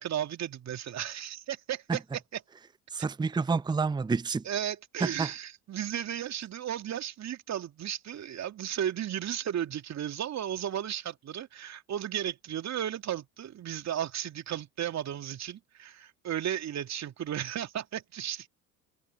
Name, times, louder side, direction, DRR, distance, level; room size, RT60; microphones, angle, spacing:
voice 1, 0.0-2.0 4.5-18.5, right 10 dB, 40° right, 2.7 m, -34 dB
voice 2, 2.9-4.5 5.0-5.3, right 4 dB, 10° right, 0.8 m, -29 dB
figure-of-eight pair, 65°, 43 cm